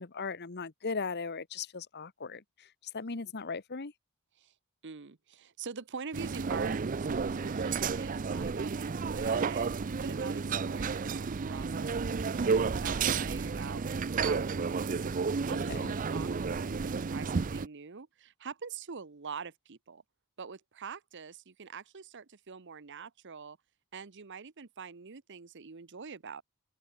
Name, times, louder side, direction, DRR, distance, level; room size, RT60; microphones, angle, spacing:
voice 1, 0.0-3.9 15.5-15.9, left 4 dB, 45° left, 1.0 m, -38 dB
voice 2, 4.8-9.7 10.0-13.8 14.2-15.1 15.5-20.0 20.4-23.6 23.9-26.4, right 5 dB, 55° right, 0.8 m, -45 dB
sound 1, 6.1-17.7, right 5 dB, 35° right, 0.4 m, -31 dB
open air
head